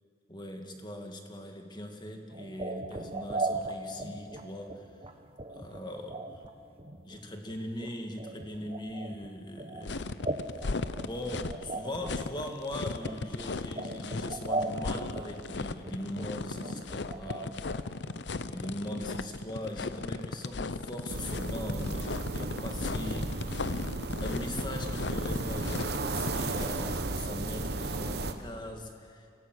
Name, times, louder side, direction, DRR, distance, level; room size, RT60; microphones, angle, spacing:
voice 1, 0.3-4.9 5.5-6.4 7.0-10.1 10.5-17.8 18.5-23.5 24.2-29.3, left 1 dB, 25° left, 4 dB, 2.1 m, -40 dB
sound 1, 2.3-17.7 17.9-18.3 18.6-18.7 19.0-19.1, right 2 dB, 30° right, 1.3 m, -38 dB
sound 2, 9.8-26.9, left 3 dB, 70° left, 0.7 m, -36 dB
sound 3, 21.1-28.3, right 2 dB, 60° right, 1.1 m, -34 dB
25.0 x 17.0 x 7.9 m, 2.4 s
head